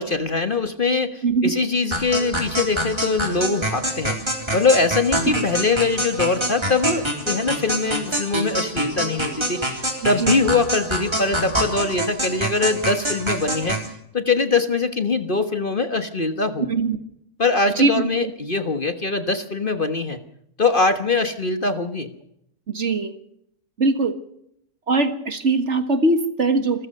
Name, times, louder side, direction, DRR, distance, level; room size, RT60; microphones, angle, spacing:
voice 1, 0.0-4.2 4.5-13.8 14.1-16.7 17.4-20.2 20.6-22.1, left 3 dB, 35° left, 9 dB, 1.4 m, -22 dB
voice 2, 1.2-1.5 5.2-5.4 10.0-10.4 16.7-17.0 17.8-17.9 18.2-18.3 22.7-23.1 23.8-24.2 24.9-26.9, right 3 dB, 45° right, 10 dB, 1.8 m, -21 dB
sound 1, 1.9-13.9, right 1 dB, 15° right, 3.8 m, -25 dB
27.0 x 15.0 x 6.6 m, 0.75 s
omnidirectional pair, 1.7 m